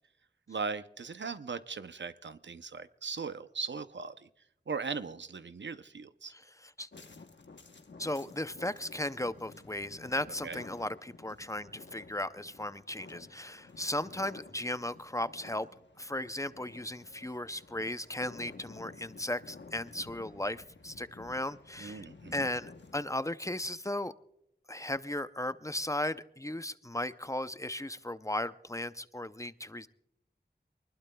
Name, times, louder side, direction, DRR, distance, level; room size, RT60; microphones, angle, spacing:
voice 1, 0.5-4.3 4.7-6.3 10.4-10.6 21.8-22.5, right 5 dB, 85° right, 12 dB, 0.6 m, -39 dB
voice 2, 6.3-6.9 8.0-15.7 16.0-22.1 22.3-24.1 24.7-29.9, left 1 dB, 15° left, 13 dB, 0.5 m, -36 dB
sound 1, 6.9-23.0, left 3 dB, 85° left, 1.0 m, -53 dB
24.0 x 20.5 x 2.2 m, 0.81 s
wide cardioid pair, 55°, 18 cm